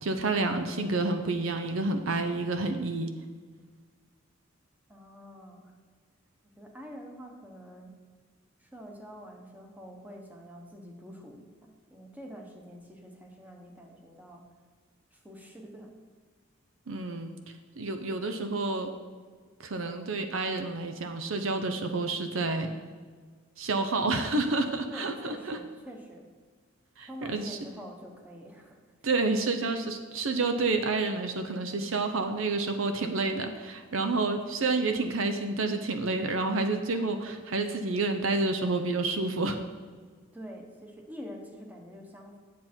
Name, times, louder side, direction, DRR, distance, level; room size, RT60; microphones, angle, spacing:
voice 1, 0.0-3.1 16.9-17.3 17.8-18.9 19.6-22.7 23.6-25.6 27.0-27.6 29.0-39.6, right 3 dB, 75° right, 7 dB, 0.7 m, -29 dB
voice 2, 4.9-5.7 6.6-7.9 8.6-14.4 15.1-15.9 24.9-26.3 27.1-28.8 40.3-42.4, equal, 10° right, 1 dB, 1.2 m, -46 dB
10.0 x 7.3 x 4.5 m, 1.5 s
head